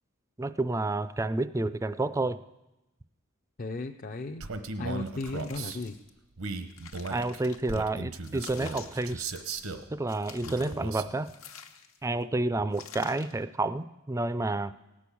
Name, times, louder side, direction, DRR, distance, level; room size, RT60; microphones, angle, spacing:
voice 1, 0.4-2.4 7.1-9.3 9.9-11.3 12.0-14.7, right 2 dB, 15° right, 14 dB, 0.4 m, -30 dB
voice 2, 3.6-4.4 4.8-6.0, left 3 dB, 40° left, 3 dB, 0.5 m, -35 dB
Male speech man speaking, 4.4-5.8 6.4-9.9 10.4-11.1, right 3 dB, 85° right, 0.9 m, -37 dB
sound 1, 5.0-6.1 6.5-7.8 8.2-9.7 10.1-10.8 11.2-12.1 12.7-13.4, left 7 dB, 80° left, 1.1 m, -48 dB
17.5 x 6.2 x 8.4 m, 0.96 s
head